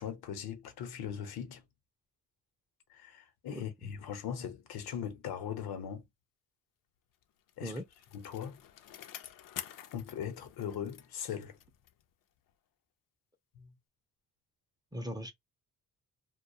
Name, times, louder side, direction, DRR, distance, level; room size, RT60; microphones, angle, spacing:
voice 1, 0.0-1.6 2.9-6.1 7.6-7.8 8.1-8.6 9.9-11.6 13.6-13.7, left 8 dB, 85° left, 0.9 m, -40 dB
voice 2, 3.6-3.9 7.6-7.8 14.9-15.3, equal, 10° right, 0.5 m, -39 dB
Bicycle, 7.2-12.1 12.5-12.6, left 11 dB, 60° left, 0.5 m, -49 dB
2.3 x 2.3 x 2.7 m
cardioid pair, 120°, 37 cm